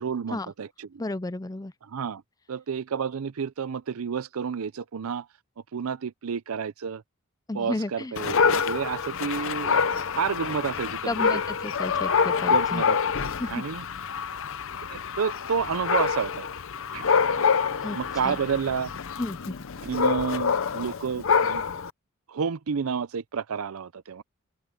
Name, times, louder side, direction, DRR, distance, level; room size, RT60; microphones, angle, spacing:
voice 1, 0.0-1.0 1.9-2.2 2.5-5.3 5.7-7.0 7.5-9.8 10.1-11.4 12.4-13.8 14.9-16.5 16.9-17.1 17.9-18.9 19.8-21.6 22.3-24.2, right 6 dB, 75° right, 0.5 m, -30 dB
voice 2, 1.0-1.7 7.5-8.1 11.1-12.8 13.4-13.6 17.8-18.0 18.2-18.4 19.2-19.6, left 2 dB, 15° left, 0.5 m, -32 dB
Dog, 8.2-21.9, left 6 dB, 60° left, 0.7 m, -26 dB
head